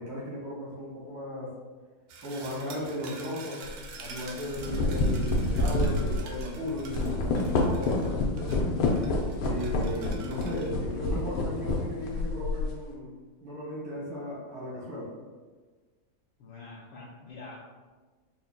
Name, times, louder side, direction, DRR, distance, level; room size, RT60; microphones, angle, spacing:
voice 1, 0.0-1.5 2.2-3.7 4.0-8.8 9.4-13.1 13.4-15.1, equal, 70° right, -6 dB, 2.5 m, -36 dB
sound 1, 2.1-10.7, right 4 dB, 90° right, 0.8 m, -47 dB
sound 2, 3.6-3.8 4.4-12.8, left 2 dB, 90° left, 1.6 m, -28 dB
voice 2, 16.4-17.6, left 3 dB, 75° left, -7 dB, 1.5 m, -45 dB
5.5 x 4.2 x 2.2 m, 1.4 s
omnidirectional pair, 2.3 m